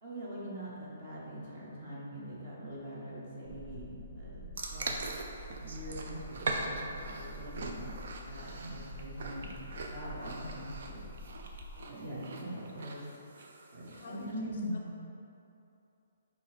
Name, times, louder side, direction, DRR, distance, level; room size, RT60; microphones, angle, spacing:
voice 1, 0.0-5.0 5.6-7.9 8.2-9.5 9.8-11.0 11.8-13.0 13.7-14.8, equal, 25° right, -7 dB, 1.1 m, -42 dB
sound 1, 3.4-11.7, equal, 65° right, 0.9 m, -46 dB
sound 2, 4.6-14.2, right 3 dB, 45° right, 0.5 m, -41 dB
voice 2, 11.8-12.2 13.9-14.8, left 3 dB, 35° left, -3 dB, 0.4 m, -50 dB
7.8 x 2.7 x 5.0 m, 2.8 s
hypercardioid pair, 180°, 0 cm